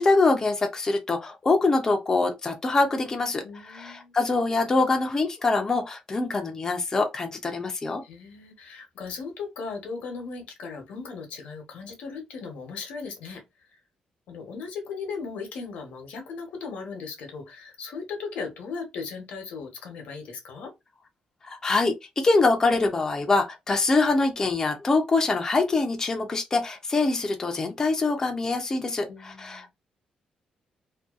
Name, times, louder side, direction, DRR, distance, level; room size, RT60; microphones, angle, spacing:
voice 1, 0.0-8.0 21.4-29.7, left 3 dB, 25° left, 0.4 m, -24 dB
voice 2, 3.4-4.1 8.0-13.4 13.7-13.8 14.3-20.7 29.1-29.7, left 5 dB, 80° left, 0.9 m, -37 dB
2.6 x 2.2 x 2.4 m
cardioid pair, 140°, 2 cm